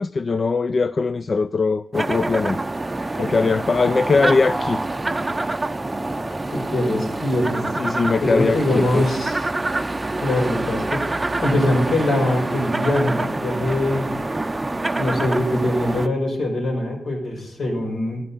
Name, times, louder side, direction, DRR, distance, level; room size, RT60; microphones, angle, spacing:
voice 1, 0.0-2.6 3.2-4.8 7.8-9.1, left 4 dB, 45° left, 0.3 m, -21 dB
sound 1, 1.9-16.1, right 2 dB, 20° right, 0.6 m, -26 dB
voice 2, 6.5-7.7 8.2-9.4 10.2-11.0 11.4-14.1 15.0-18.2, left 1 dB, 70° left, 5.2 m, -22 dB
14.0 x 11.0 x 4.1 m
wide cardioid pair, 135°, 0 cm